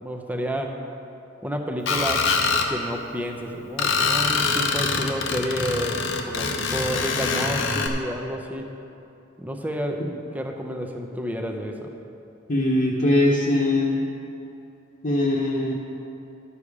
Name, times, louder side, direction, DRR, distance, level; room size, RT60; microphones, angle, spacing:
voice 1, 0.0-0.8 1.4-2.3 2.7-8.7 9.4-11.9, equal, 10° right, 3 dB, 0.7 m, -30 dB
Screech, 1.9-2.7 3.8-7.9, left 4 dB, 60° left, 0.8 m, -24 dB
voice 2, 12.5-14.0 15.0-15.7, left 1 dB, 40° left, -6 dB, 1.0 m, -21 dB
12.0 x 7.0 x 4.9 m, 2.8 s
head